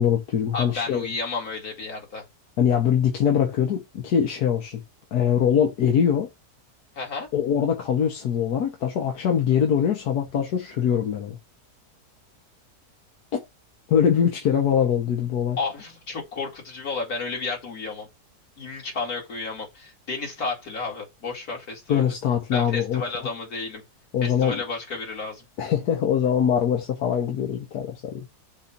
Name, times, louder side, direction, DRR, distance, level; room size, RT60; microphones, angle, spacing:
voice 1, 0.0-1.1 2.6-4.8 5.1-6.3 7.3-11.4 13.3-13.4 13.9-15.6 21.9-23.0 24.1-24.6 25.6-28.2, left 8 dB, 85° left, 1.5 m, -23 dB
voice 2, 0.5-2.2 7.0-7.3 15.6-18.1 18.6-22.0 22.5-23.8 24.2-25.4, left 4 dB, 70° left, 2.9 m, -32 dB
7.0 x 2.6 x 5.7 m
omnidirectional pair, 1.7 m